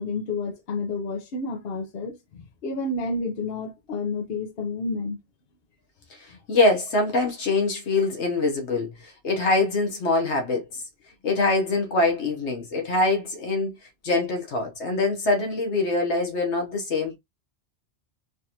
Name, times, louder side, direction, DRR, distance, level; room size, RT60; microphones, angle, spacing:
voice 1, 0.0-5.2, left 3 dB, 60° left, 1.1 m, -30 dB
voice 2, 6.1-10.8 11.2-13.7 14.0-17.2, left 3 dB, 85° left, 1.3 m, -24 dB
3.9 x 2.5 x 2.8 m
omnidirectional pair, 1.1 m